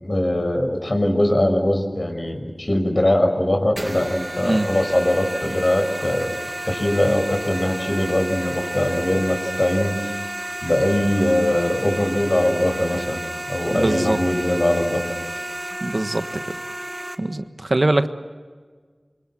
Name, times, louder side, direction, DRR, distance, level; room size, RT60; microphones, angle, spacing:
voice 1, 0.0-6.3 6.7-10.1 10.6-13.2 13.5-15.1, left 1 dB, 50° left, 5 dB, 5.8 m, -21 dB
sound 1, 3.8-17.1, right 1 dB, 35° right, 2.3 m, -31 dB
voice 2, 13.7-14.2 15.8-16.6 17.2-18.1, right 2 dB, 55° right, 8 dB, 1.5 m, -22 dB
28.0 x 24.5 x 7.6 m, 1.5 s
wide cardioid pair, 50°, 0 cm